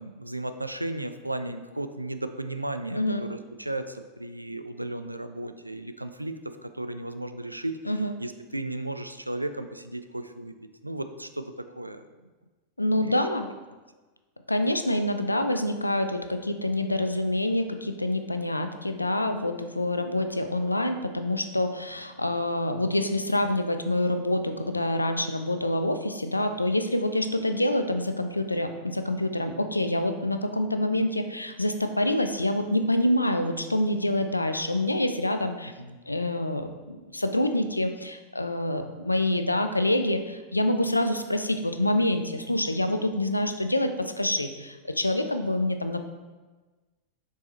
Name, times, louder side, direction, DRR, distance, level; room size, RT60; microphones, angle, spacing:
voice 1, 0.0-10.5 10.8-12.0 12.8-13.3 35.8-36.0, right 1 dB, 85° right, 9 dB, 0.4 m, -35 dB
voice 2, 2.9-3.2 7.9-8.1 12.8-13.5 14.5-35.7 36.1-46.0, left 1 dB, 85° left, 8 dB, 0.5 m, -26 dB
6.4 x 4.8 x 4.1 m, 1.2 s
figure-of-eight pair, 90°, 0 cm